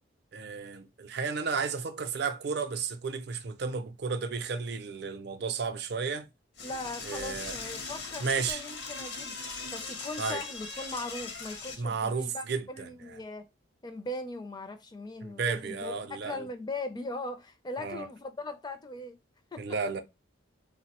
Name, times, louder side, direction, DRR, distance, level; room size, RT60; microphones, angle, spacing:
voice 1, 0.3-6.3 7.0-7.6 8.2-8.6 10.2-10.4 11.8-13.2 15.2-16.5 17.8-18.1 19.6-20.0, right 5 dB, 55° right, 0.4 m, -33 dB
Door / Toilet flush, 6.6-11.8, left 4 dB, 55° left, 0.7 m, -40 dB
voice 2, 6.6-9.4 9.7-13.5 13.8-19.2 19.5-19.6, left 2 dB, 20° left, 0.4 m, -39 dB
3.4 x 2.1 x 2.8 m
head